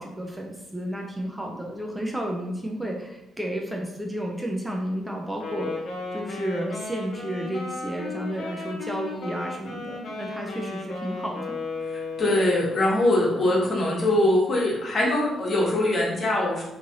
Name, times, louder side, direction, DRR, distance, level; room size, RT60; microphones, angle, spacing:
voice 1, 0.0-5.8 6.1-11.5, right 1 dB, 10° right, 0 dB, 0.5 m, -32 dB
Wind instrument woodwind instrument, 5.3-12.6, left 3 dB, 65° left, 0.8 m, -35 dB
voice 2, 12.2-16.6, left 1 dB, 45° left, -3 dB, 1.2 m, -22 dB
3.1 x 2.5 x 3.9 m, 0.91 s
cardioid pair, 90°, 0 cm